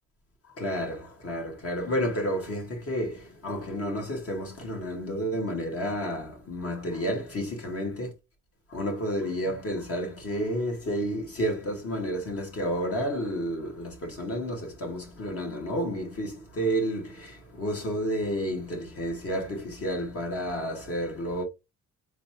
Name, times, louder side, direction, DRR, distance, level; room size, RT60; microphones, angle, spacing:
voice 1, 0.6-8.1 8.7-21.4, equal, 50° left, 2.0 m, -31 dB
4.0 x 3.5 x 2.9 m
cardioid pair, 90°, 30 cm